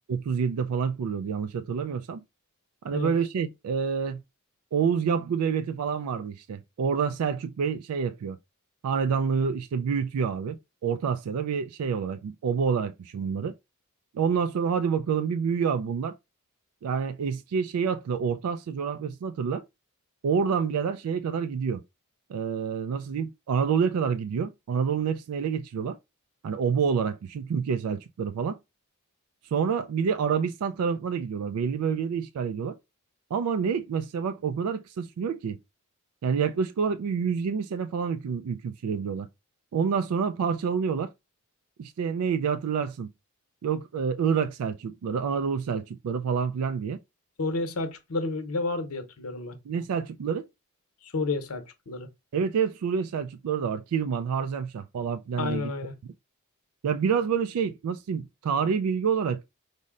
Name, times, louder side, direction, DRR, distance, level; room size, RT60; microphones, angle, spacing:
voice 1, 0.1-2.2 2.8-4.2 4.7-8.4 8.8-13.5 14.1-16.2 16.8-19.6 20.2-21.8 22.3-26.0 26.4-28.6 29.5-32.8 33.3-35.6 36.2-39.3 39.7-41.1 41.8-43.1 43.6-47.0 49.7-50.4 52.3-55.7 56.8-59.4, right 6 dB, 85° right, 0.3 m, -28 dB
voice 2, 47.4-49.6 51.0-52.1 55.4-55.9, left 3 dB, 80° left, 0.8 m, -31 dB
5.3 x 2.1 x 3.7 m
head